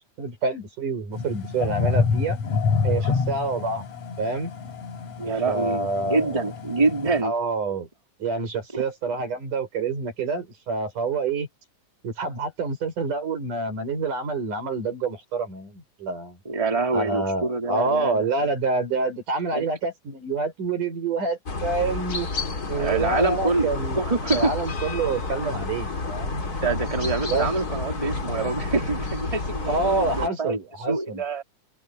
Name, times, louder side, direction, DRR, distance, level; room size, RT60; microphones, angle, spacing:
voice 1, 0.2-2.4 2.8-3.9 4.2-4.5 5.5-6.4 7.2-7.9 8.2-11.5 12.0-16.4 16.9-22.3 22.7-24.0 24.3-26.4 27.3-27.5 29.7-31.2, right 3 dB, 85° right, 7.7 m, -27 dB
sound 1, 1.1-7.2, left 5 dB, 60° left, 4.6 m, -27 dB
voice 2, 5.2-7.3 8.7-8.8 16.4-18.3 19.5-19.7 22.7-24.5 26.6-30.6 30.9-31.4, right 3 dB, 10° right, 2.9 m, -26 dB
sound 2, 21.5-30.3, left 3 dB, 30° left, 3.4 m, -30 dB
open air
omnidirectional pair, 3.6 m